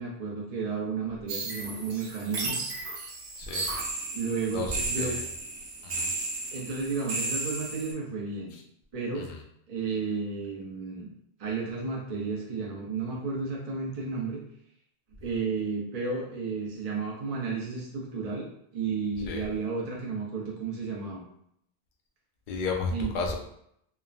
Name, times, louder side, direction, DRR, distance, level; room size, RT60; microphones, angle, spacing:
voice 1, 0.0-2.6 4.1-5.1 6.5-8.5 8.9-9.2 9.7-11.1 11.4-14.4 15.2-21.2 22.9-23.1, right 4 dB, 45° right, -3 dB, 0.5 m, -32 dB
sound 1, 1.3-7.9, right 3 dB, 85° right, 0.9 m, -34 dB
voice 2, 3.4-3.7 4.5-5.2 5.8-6.1 8.5-8.6 9.1-9.4 19.3-19.4 22.5-23.4, left 4 dB, 60° left, 1 dB, 0.6 m, -33 dB
3.2 x 2.1 x 2.3 m, 0.72 s
omnidirectional pair, 1.1 m